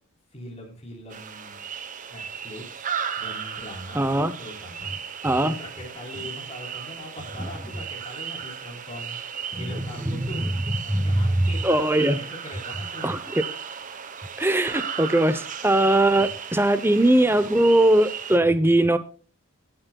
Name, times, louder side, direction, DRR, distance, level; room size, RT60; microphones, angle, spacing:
voice 1, 0.3-1.6 2.1-2.9 3.2-4.0 4.4-4.9 5.4-9.2 9.5-10.5 10.8-11.7 12.1-13.1, left 1 dB, 30° left, -1 dB, 4.0 m, -41 dB
sound 1, 1.1-18.4, right 7 dB, 35° right, 0.9 m, -36 dB
voice 2, 3.9-4.3 5.2-5.5 9.5-9.6 10.1-10.5 10.9-12.2 13.0-13.4 14.4-19.0, right 1 dB, 10° right, 12 dB, 0.7 m, -20 dB
17.0 x 7.9 x 2.3 m, 0.40 s
head